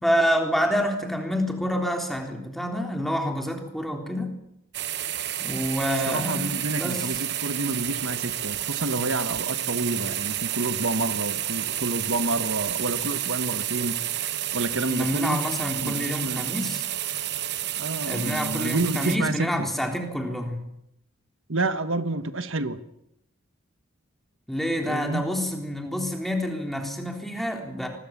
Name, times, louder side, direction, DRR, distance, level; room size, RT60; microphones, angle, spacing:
voice 1, 0.0-4.3 5.4-7.1 14.9-16.8 18.0-20.6 24.5-27.9, equal, ahead, 2 dB, 3.5 m, -27 dB
sound 1, 4.7-19.2, right 12 dB, 55° right, 0.9 m, -30 dB
voice 2, 6.1-14.0 14.5-15.4 15.8-16.4 17.8-19.5 21.5-22.8 24.9-25.2, right 2 dB, 75° right, 10 dB, 1.4 m, -29 dB
25.0 x 21.5 x 7.4 m, 0.77 s
head